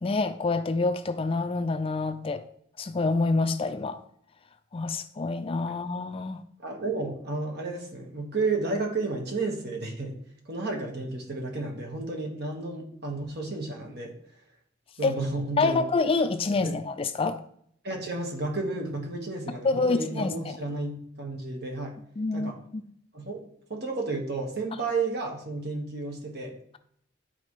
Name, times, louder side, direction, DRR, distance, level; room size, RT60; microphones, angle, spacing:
voice 1, 0.0-2.4 2.8-4.0 4.7-6.4 15.0-15.1 15.6-17.4 19.6-20.6 22.2-22.8, left 3 dB, 30° left, 10 dB, 0.4 m, -27 dB
voice 2, 6.6-10.2 10.4-14.1 15.0-15.8 16.6-16.8 17.8-22.0 22.3-22.6 23.1-23.4 23.7-26.6, right 3 dB, 60° right, 1 dB, 1.5 m, -32 dB
10.5 x 4.3 x 3.2 m, 0.67 s
head